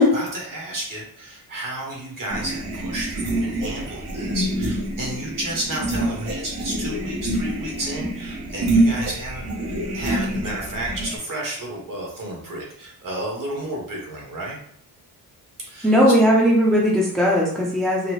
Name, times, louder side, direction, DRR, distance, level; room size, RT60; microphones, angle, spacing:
voice 1, 0.1-14.6 15.6-15.9 16.2-16.3, right 1 dB, 50° right, -2 dB, 1.2 m, -32 dB
sound 1, 2.3-11.2, right 1 dB, 75° right, 1.1 m, -26 dB
voice 2, 15.8-18.1, equal, ahead, -3 dB, 0.6 m, -17 dB
3.9 x 2.1 x 3.1 m, 0.65 s
wide cardioid pair, 150°, 40 cm